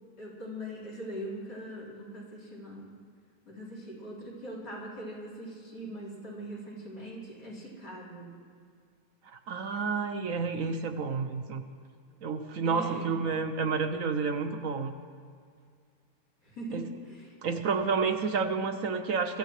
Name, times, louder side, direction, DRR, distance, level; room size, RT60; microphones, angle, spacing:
voice 1, 0.2-2.9 3.5-8.3 12.6-13.2 16.4-17.3, equal, 75° left, -4 dB, 5.0 m, -41 dB
voice 2, 9.5-11.6 12.2-14.9 16.7-16.8 17.4-19.4, right 5 dB, 60° right, 7 dB, 1.0 m, -30 dB
24.0 x 15.0 x 3.2 m, 2.2 s
omnidirectional pair, 1.8 m